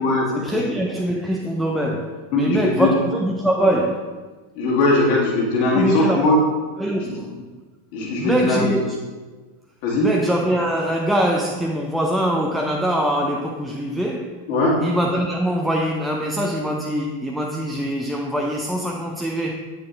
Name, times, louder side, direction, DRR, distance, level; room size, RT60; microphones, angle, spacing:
voice 1, 0.3-4.2 5.7-6.4 6.8-7.5 8.2-8.9 10.0-14.4 14.8-19.6, right 1 dB, 5° right, 0 dB, 0.5 m, -23 dB
voice 2, 2.3-2.9 4.6-6.4 7.0-7.2 7.9-8.7 9.8-10.1 14.5-14.8, left 2 dB, 45° left, -3 dB, 1.8 m, -19 dB
8.3 x 6.1 x 2.6 m, 1.3 s
figure-of-eight pair, 90°, 0 cm